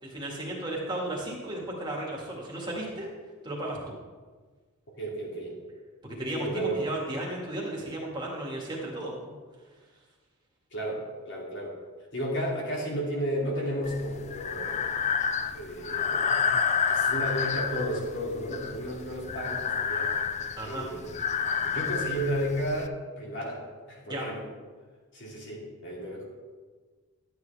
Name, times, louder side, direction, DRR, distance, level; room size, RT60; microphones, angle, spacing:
voice 1, 0.0-3.1 3.4-4.0 6.0-9.3 20.6-20.9 24.1-24.3, right 1 dB, 20° right, -3 dB, 2.2 m, -34 dB
voice 2, 5.0-5.6 6.3-6.8 10.7-11.8 12.1-14.9 15.5-16.3 16.9-20.1 20.6-21.2 21.6-23.6 23.9-24.5 25.1-26.2, equal, 55° left, -3 dB, 2.8 m, -33 dB
Breathing, 13.9-22.9, left 6 dB, 30° left, 0.3 m, -29 dB
12.0 x 9.3 x 3.5 m, 1.4 s
head